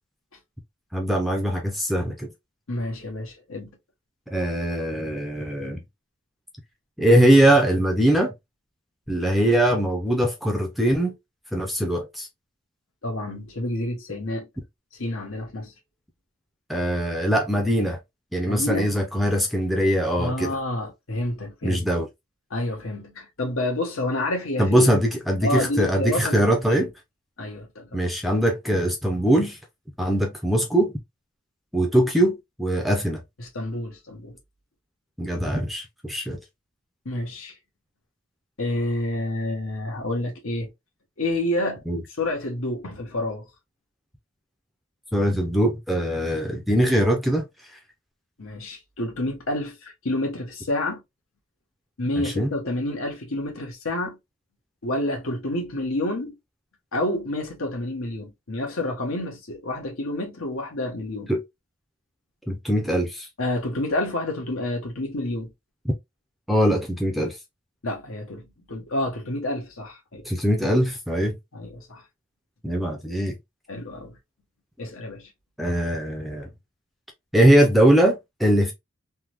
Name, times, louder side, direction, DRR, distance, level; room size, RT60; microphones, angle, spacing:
voice 1, 0.9-2.3 4.3-5.8 7.0-8.3 9.1-11.1 11.5-12.3 16.7-18.0 18.3-20.5 21.6-22.1 24.6-26.9 27.9-29.6 30.0-30.9 31.7-33.2 35.2-36.4 41.9-42.0 45.1-47.4 52.2-52.5 61.3-61.4 62.5-63.3 66.5-67.4 70.3-71.4 72.6-73.4 75.6-76.5 77.3-78.7, right 1 dB, ahead, 0.5 m, -21 dB
voice 2, 2.7-3.7 13.0-14.5 14.9-15.7 18.4-18.9 20.2-21.8 22.5-24.9 25.4-26.8 27.4-28.0 33.4-34.4 37.0-37.5 38.6-40.7 41.2-41.8 42.2-43.5 48.4-51.0 52.0-54.2 54.8-56.3 56.9-61.3 63.4-65.5 67.8-68.4 68.7-70.3 71.5-72.0 73.7-74.2 74.8-75.3, left 1 dB, 80° left, 1.1 m, -29 dB
3.4 x 2.1 x 2.9 m
head